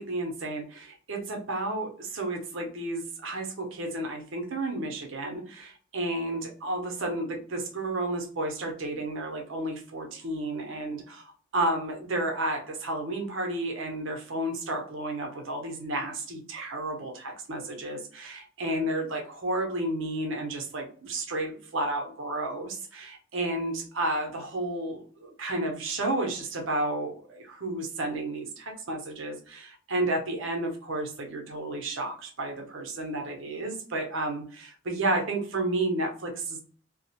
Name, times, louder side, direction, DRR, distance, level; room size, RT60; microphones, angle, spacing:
voice 1, 0.0-36.6, right 2 dB, 75° right, 3 dB, 0.7 m, -32 dB
2.3 x 2.1 x 2.8 m, 0.44 s
head